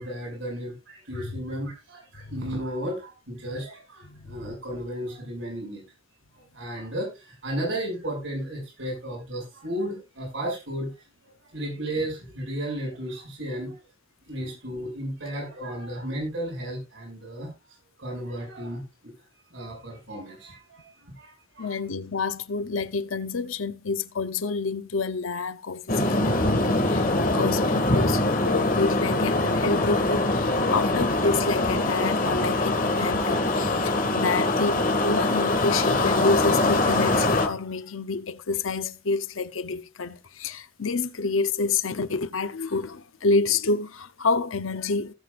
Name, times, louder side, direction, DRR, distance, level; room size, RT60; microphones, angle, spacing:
voice 1, 0.0-5.8 6.3-13.8 14.3-19.1 19.5-21.8, right 1 dB, 70° right, 6.7 m, -34 dB
voice 2, 4.1-4.5 21.6-45.1, left 3 dB, 90° left, 0.8 m, -28 dB
sound 1, 25.9-37.5, left 2 dB, 45° left, 2.0 m, -23 dB
17.5 x 7.8 x 2.5 m
head